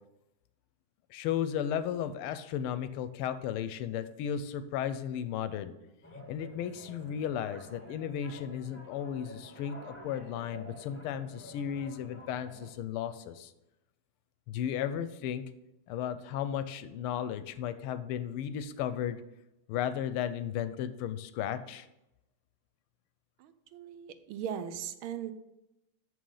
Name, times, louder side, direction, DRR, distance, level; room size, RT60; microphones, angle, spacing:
voice 1, 1.1-5.7 6.1-13.5 14.5-15.4 15.9-19.2 19.7-21.9, left 9 dB, 90° left, 12 dB, 1.5 m, -35 dB
sound 1, 6.0-12.7, equal, 10° left, 0.5 m, -50 dB
voice 2, 23.4-25.3, right 9 dB, 80° right, 11 dB, 1.5 m, -39 dB
6.5 x 6.3 x 5.6 m, 0.90 s
omnidirectional pair, 2.3 m